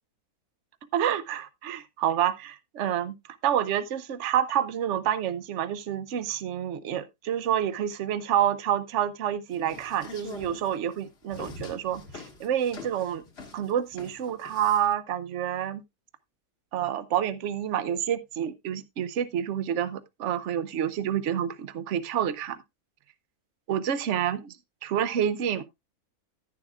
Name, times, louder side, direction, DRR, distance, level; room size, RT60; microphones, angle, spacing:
voice 1, 0.9-3.1 3.4-13.2 13.5-15.8 16.7-22.6 23.7-24.5 24.8-25.6, right 10 dB, 60° right, 1.0 m, -28 dB
sound 1, 9.5-14.9, left 4 dB, 45° left, 1.5 m, -44 dB
10.5 x 10.5 x 2.4 m
omnidirectional pair, 1.6 m